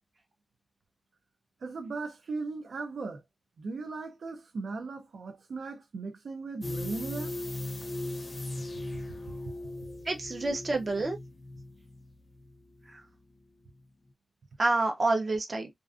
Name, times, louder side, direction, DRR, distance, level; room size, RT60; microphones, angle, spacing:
voice 1, 1.6-3.2 3.6-7.3, right 3 dB, 85° right, 0.4 m, -37 dB
sound 1, 6.6-13.4 13.7-13.8, left 1 dB, 30° left, 0.4 m, -39 dB
voice 2, 10.1-11.2 14.6-15.7, right 2 dB, 40° right, 0.6 m, -28 dB
2.4 x 2.4 x 2.3 m
wide cardioid pair, 135°, 0 cm